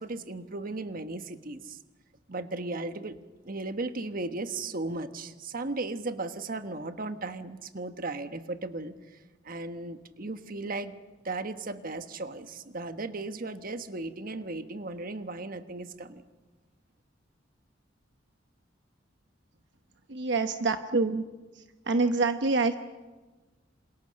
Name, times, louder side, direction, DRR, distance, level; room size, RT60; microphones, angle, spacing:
voice 1, 0.0-1.8 2.3-3.2 3.4-8.9 9.4-11.0 11.2-16.2, right 2 dB, 50° right, 9 dB, 1.4 m, -36 dB
voice 2, 20.1-21.2 21.5-22.8, right 3 dB, 65° right, 7 dB, 1.0 m, -26 dB
28.0 x 27.5 x 6.5 m, 1.2 s
head